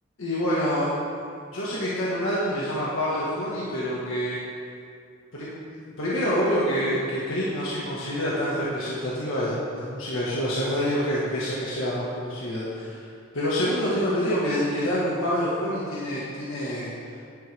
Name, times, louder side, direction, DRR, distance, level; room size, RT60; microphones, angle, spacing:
voice 1, 0.2-0.9 1.5-4.4 5.3-5.6 6.0-12.9 13.3-17.2, equal, 85° left, -8 dB, 1.8 m, -27 dB
10.5 x 10.0 x 3.6 m, 2.4 s
head